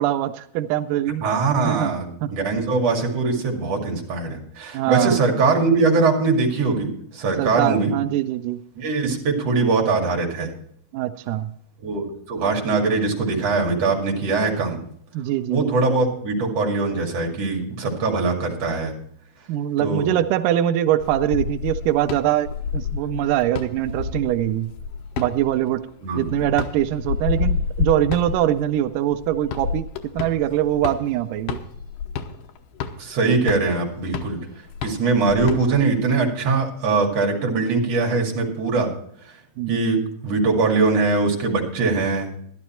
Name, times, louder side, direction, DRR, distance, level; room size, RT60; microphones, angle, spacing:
voice 1, 0.0-1.2 1.6-2.3 4.7-5.2 7.4-8.6 10.9-11.5 15.1-15.8 19.5-24.7 25.2-25.8 26.1-29.8 30.1-31.6 39.6-39.8, right 12 dB, 90° right, 10 dB, 1.8 m, -23 dB
voice 2, 1.2-7.9 8.8-10.5 11.8-14.8 15.5-18.9 19.8-20.2 26.0-26.4 33.0-34.4 34.8-38.9 39.7-42.4, right 3 dB, 45° right, 1 dB, 3.0 m, -22 dB
sound 1, 21.0-36.0, left 6 dB, 75° left, 2.5 m, -30 dB
12.5 x 12.0 x 4.4 m, 0.65 s
omnidirectional pair, 4.3 m